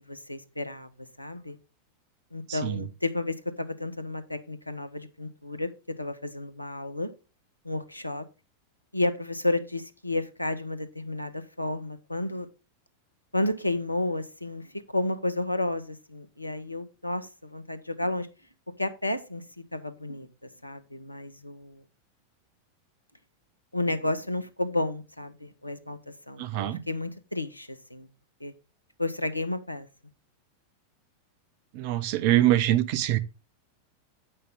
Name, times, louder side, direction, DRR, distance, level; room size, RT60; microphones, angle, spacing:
voice 1, 0.1-1.6 2.3-5.7 6.0-7.1 7.6-8.3 8.9-12.5 13.3-18.3 18.8-21.8 23.7-28.1 28.4-28.5 29.0-29.9, left 2 dB, 85° left, 0.8 m, -32 dB
voice 2, 2.5-2.8 26.4-26.8 31.7-33.2, right 13 dB, 45° right, 0.7 m, -24 dB
8.1 x 5.5 x 3.9 m
figure-of-eight pair, 90°, 0 cm